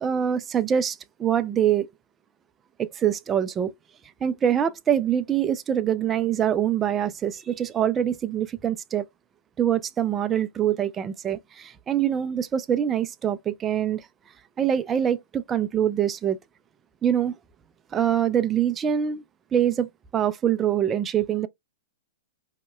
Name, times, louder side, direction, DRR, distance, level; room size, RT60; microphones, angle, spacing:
voice 1, 0.0-1.9 2.8-3.7 4.2-9.0 9.6-14.1 14.6-16.4 17.0-17.3 17.9-19.2 19.5-21.5, right 9 dB, 20° right, 0.4 m, -24 dB
3.9 x 2.8 x 2.3 m
hypercardioid pair, 125°, 0 cm